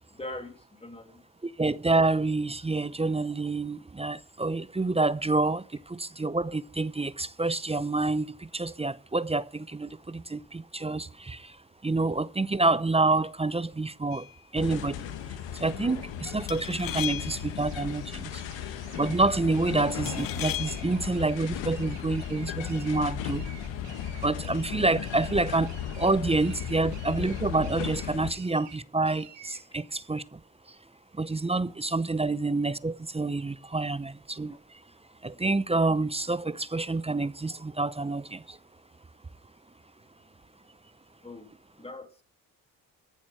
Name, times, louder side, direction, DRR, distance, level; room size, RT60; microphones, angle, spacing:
voice 1, 0.1-1.2 26.8-26.9 41.2-41.5 41.8-42.2, left 2 dB, 15° left, 2.5 m, -42 dB
voice 2, 1.4-18.4 18.9-23.5 24.2-30.4 30.7-30.8 31.1-34.8 35.2-38.6, right 3 dB, 15° right, 0.6 m, -28 dB
sound 1, 14.1-14.4 16.5-17.6 20.1-21.0, left 12 dB, 50° left, 0.7 m, -36 dB
sound 2, 14.6-28.3, left 9 dB, 80° left, 1.5 m, -36 dB
sound 3, 17.6-29.6, right 8 dB, 70° right, 2.3 m, -51 dB
14.0 x 7.2 x 6.0 m
supercardioid pair, 60°, 44 cm